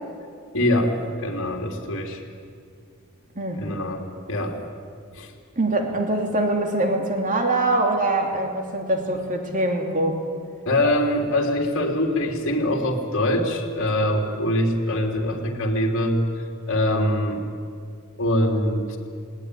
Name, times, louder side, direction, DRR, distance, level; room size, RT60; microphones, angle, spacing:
voice 1, 0.5-2.2 3.6-4.0 4.3-4.6 5.1-5.3 10.6-16.2 16.7-17.4 18.2-19.0, left 1 dB, 65° left, 2 dB, 3.2 m, -23 dB
voice 2, 3.3-3.7 5.6-10.2, right 2 dB, 40° right, 2 dB, 2.8 m, -23 dB
19.5 x 18.5 x 9.8 m, 2.3 s
head